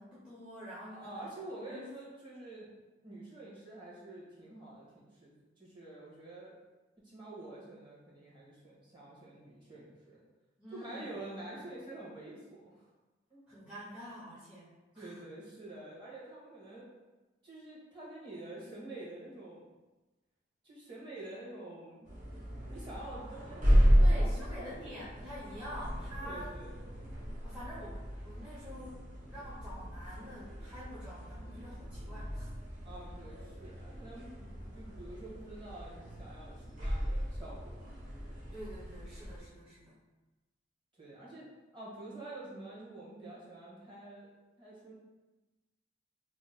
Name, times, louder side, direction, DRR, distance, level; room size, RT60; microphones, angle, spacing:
voice 1, 0.0-1.3 1.6-1.9 10.6-11.1 11.4-11.6 13.5-15.2 24.0-26.6 27.4-32.5 38.5-40.0, equal, 5° right, -10 dB, 0.6 m, -47 dB
voice 2, 0.8-2.7 3.0-6.5 7.0-10.2 10.7-12.9 13.3-13.4 14.9-16.9 17.4-19.7 20.6-22.1 22.7-24.9 26.2-26.8 32.8-34.3 34.7-37.9 41.0-44.3 44.6-44.9, right 2 dB, 25° right, -7 dB, 1.2 m, -47 dB
sound 1, 22.1-39.4, equal, 45° right, 0.9 m, -33 dB
2.9 x 2.1 x 3.9 m, 1.1 s
head